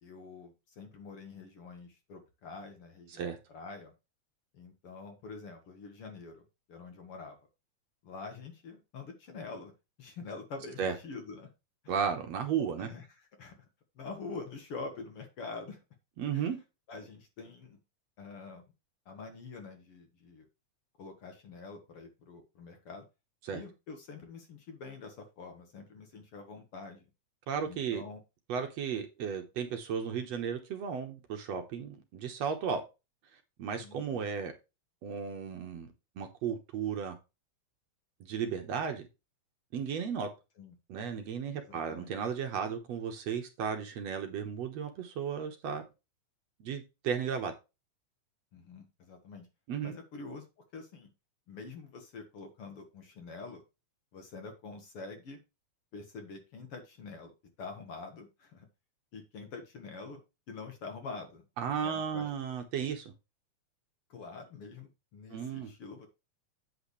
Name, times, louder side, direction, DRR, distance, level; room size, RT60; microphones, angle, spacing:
voice 1, 0.0-3.3 3.5-3.9 4.5-6.4 6.7-7.4 8.0-9.7 10.0-11.5 11.8-11.9 12.8-13.6 14.0-15.8 16.3-16.5 16.9-17.8 18.2-18.6 19.1-20.5 21.0-23.0 23.5-27.0 27.6-28.2 33.7-34.3 40.6-40.7 41.5-42.1 48.5-49.5 49.8-50.5 50.7-51.1 51.5-53.6 54.1-55.4 55.9-57.3 57.6-58.7 59.1-60.2 60.5-61.4 61.8-62.3 64.1-66.1, left 4 dB, 55° left, 5 dB, 2.2 m, -46 dB
voice 2, 11.9-12.9 16.2-16.6 23.4-23.6 27.5-28.0 28.5-32.8 33.6-34.5 35.0-35.9 36.2-37.2 38.2-39.0 39.7-40.3 40.9-45.8 46.6-47.5 49.7-49.9 61.6-63.1 65.3-65.7, right 7 dB, 65° right, 6 dB, 2.1 m, -34 dB
8.5 x 7.8 x 3.2 m, 0.26 s
omnidirectional pair, 3.5 m